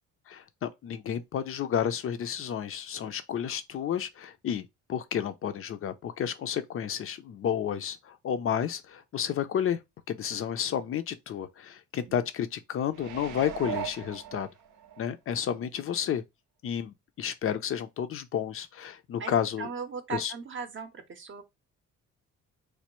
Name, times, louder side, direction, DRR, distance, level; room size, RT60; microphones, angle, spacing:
voice 1, 0.3-9.8 10.1-14.5 15.0-16.2 16.6-19.7 20.1-20.3, left 9 dB, 45° left, 0.5 m, -31 dB
sound 1, 12.9-15.0 15.5-15.6, right 9 dB, 80° right, 0.6 m, -38 dB
voice 2, 19.2-21.4, right 6 dB, 40° right, 0.6 m, -38 dB
3.2 x 2.2 x 3.0 m
cardioid pair, 90°, 30 cm